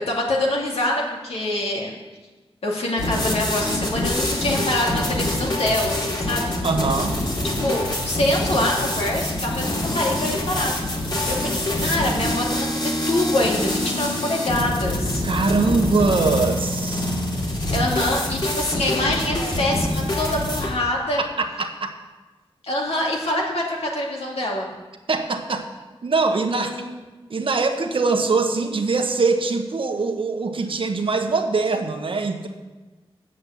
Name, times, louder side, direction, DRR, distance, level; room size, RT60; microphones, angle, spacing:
voice 1, 0.0-2.0 2.6-6.5 7.4-10.7 11.0-15.2 17.7-21.2 22.6-24.7 26.5-27.0, left 1 dB, 80° left, -2 dB, 2.2 m, -25 dB
sound 1, 3.0-20.7, left 1 dB, 45° left, 2.3 m, -25 dB
voice 2, 6.6-7.2 15.2-17.1 21.4-21.9 25.1-25.7 26.0-26.7 27.3-32.5, right 4 dB, 60° right, 5 dB, 1.1 m, -22 dB
7.7 x 7.5 x 8.3 m, 1.2 s
wide cardioid pair, 105°, 10 cm